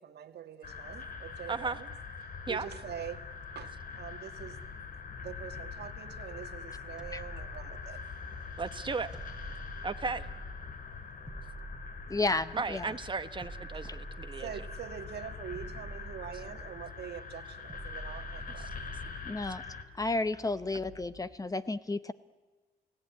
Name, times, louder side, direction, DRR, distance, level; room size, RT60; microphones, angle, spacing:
voice 1, 0.0-1.9 2.5-4.9 5.2-8.0 8.3-8.4 10.9-11.3 13.7-13.8 14.4-18.7, right 8 dB, 70° right, 1.7 m, -44 dB
drone Space wind scifi, 0.6-19.8, left 5 dB, 55° left, 2.5 m, -44 dB
voice 2, 1.5-1.8 2.5-2.7 8.6-9.1 9.8-10.3 12.5-14.5, right 4 dB, 30° right, 1.3 m, -35 dB
sound 1, 2.6-21.3, left 4 dB, 85° left, 8.0 m, -56 dB
sound 2, 7.0-8.3 9.1-10.8 11.3-12.7 13.4-15.0 15.6-17.0 17.7-19.3, right 2 dB, 5° right, 4.0 m, -46 dB
voice 3, 12.1-12.8 13.9-14.0 19.2-19.6 20.0-22.1, left 2 dB, 20° left, 0.8 m, -32 dB
29.5 x 17.5 x 9.4 m
cardioid pair, 105°, 18 cm